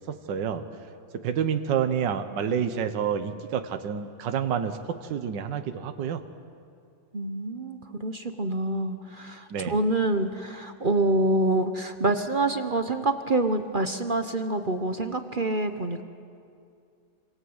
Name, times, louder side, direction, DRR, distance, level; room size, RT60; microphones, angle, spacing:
voice 1, 0.1-0.6 1.1-6.2 9.5-9.8, right 8 dB, 75° right, 8 dB, 1.7 m, -28 dB
voice 2, 7.1-16.0, right 2 dB, 35° right, 7 dB, 1.0 m, -26 dB
27.5 x 26.5 x 8.0 m, 2.3 s
omnidirectional pair, 2.0 m